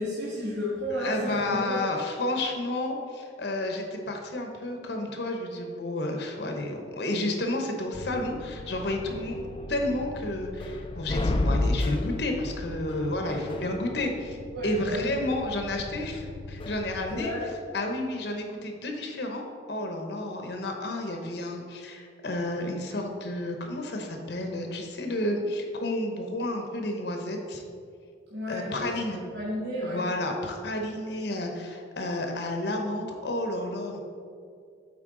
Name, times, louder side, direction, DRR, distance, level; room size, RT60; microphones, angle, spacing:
voice 1, 0.0-1.8 13.2-13.5 14.5-15.1 17.1-17.5 28.3-30.1, equal, 75° right, -9 dB, 1.4 m, -33 dB
voice 2, 1.0-14.4 14.6-17.3 17.7-27.6 28.5-29.2 29.8-34.0, left 1 dB, 65° left, 3 dB, 0.8 m, -31 dB
sound 1, 7.9-17.2, left 2 dB, 30° left, 0.4 m, -33 dB
8.5 x 4.4 x 3.7 m, 2.2 s
head